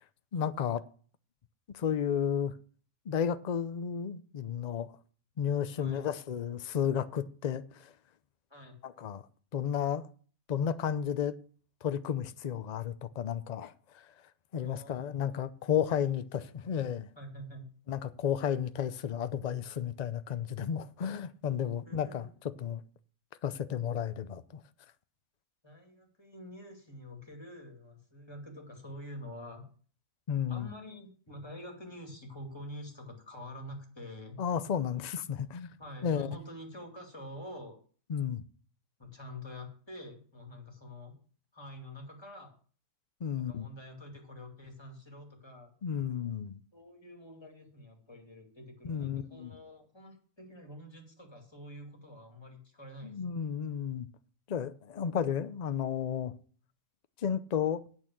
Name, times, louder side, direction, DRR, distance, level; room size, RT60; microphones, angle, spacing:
voice 1, 0.3-0.8 1.7-2.5 3.1-4.9 5.4-7.9 8.8-9.2 9.5-10.1 10.5-11.3 11.8-14.1 14.5-17.1 17.9-22.3 22.6-22.8 23.4-24.6 30.3-30.7 34.4-35.7 36.0-36.3 38.1-38.4 43.2-43.7 45.8-46.6 48.8-49.5 53.0-54.1 54.5-56.3 57.2-57.8, left 8 dB, 55° left, 0.4 m, -32 dB
voice 2, 5.8-6.4 8.5-8.8 14.6-15.4 16.4-16.8 17.2-17.6 21.8-22.3 25.6-29.6 30.5-34.4 35.8-37.8 39.0-41.2 41.5-42.5 43.4-45.7 46.7-53.2, left 1 dB, 15° left, 2.5 m, -47 dB
8.8 x 6.4 x 7.6 m
omnidirectional pair, 1.5 m